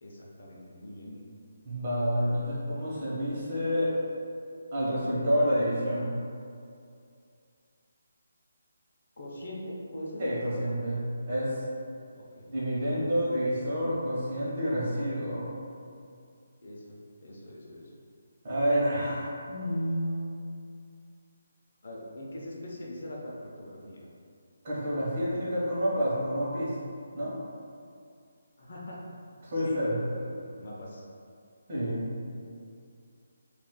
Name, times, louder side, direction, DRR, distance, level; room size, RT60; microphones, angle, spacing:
voice 1, 0.0-1.2 9.2-10.3 12.2-12.5 16.6-17.9 21.8-24.1 28.6-29.0 29.6-31.1, left 1 dB, 55° left, -4 dB, 0.6 m, -42 dB
voice 2, 1.6-3.9 4.7-6.2 10.2-11.0 11.3-11.6 12.5-15.5 18.4-20.3 24.6-26.8 27.1-27.3 29.4-30.0 31.7-32.1, equal, 35° right, -8 dB, 0.9 m, -29 dB
2.4 x 2.3 x 3.6 m, 2.4 s
hypercardioid pair, 170°, 0 cm